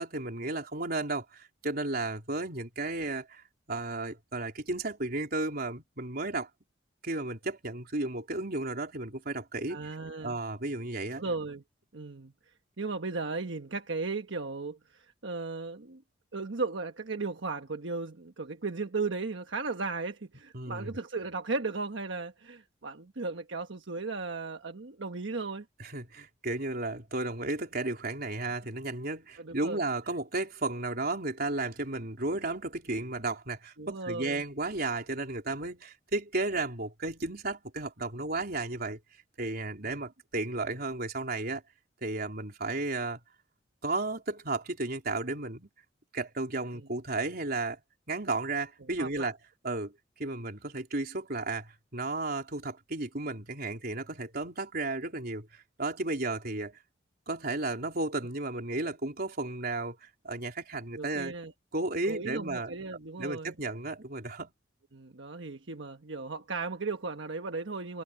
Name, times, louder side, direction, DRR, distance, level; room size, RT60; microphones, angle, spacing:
voice 1, 0.0-6.5 7.0-9.8 10.2-11.2 20.5-21.0 25.8-39.0 39.4-41.6 42.0-43.2 43.8-45.7 46.1-47.8 48.1-49.4 49.6-49.9 50.2-56.8 57.3-61.3 61.7-62.7 63.2-64.5, right 2 dB, 55° right, 4.1 m, -33 dB
voice 2, 9.7-10.4 11.2-11.6 11.9-12.3 12.8-16.0 16.3-25.7 29.4-29.8 33.8-34.4 39.8-40.0 46.7-46.9 49.0-49.3 61.0-61.5 62.1-63.5 64.9-68.0, right 3 dB, 85° right, 1.2 m, -36 dB
head